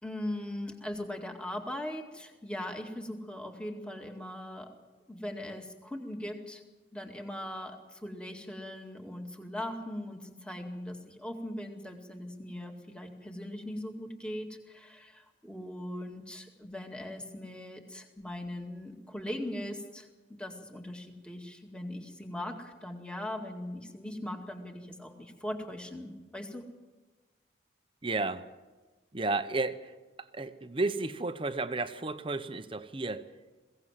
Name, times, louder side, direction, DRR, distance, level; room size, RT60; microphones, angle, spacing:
voice 1, 0.0-4.7 5.1-6.6 6.9-26.7, left 1 dB, 5° left, 3 dB, 2.1 m, -40 dB
voice 2, 28.0-28.4 29.1-29.9 30.3-33.3, right 3 dB, 30° right, 10 dB, 0.9 m, -32 dB
22.0 x 17.0 x 7.5 m, 1.2 s
head